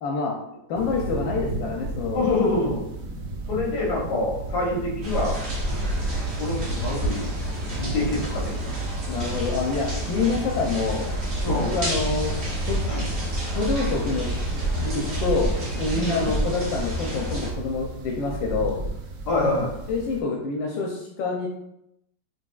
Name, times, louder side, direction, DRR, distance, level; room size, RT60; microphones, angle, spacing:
voice 1, 0.0-0.3 0.7-2.2 9.1-11.1 11.5-12.3 12.7-12.9 13.5-14.4 14.8-18.8 19.4-19.6 19.9-21.5, left 4 dB, 85° left, -1 dB, 1.4 m, -27 dB
sound 1, 0.7-20.2, right 2 dB, 90° right, 0.5 m, -34 dB
voice 2, 2.1-2.8 3.5-5.4 6.4-7.4 7.7-8.6 11.4-11.7 12.9-13.0 15.9-16.3 19.3-19.8, left 2 dB, 65° left, -2 dB, 1.7 m, -26 dB
sound 2, 5.0-17.5, right 1 dB, 40° right, 1.3 m, -29 dB
5.1 x 3.2 x 2.3 m, 0.81 s
omnidirectional pair, 2.0 m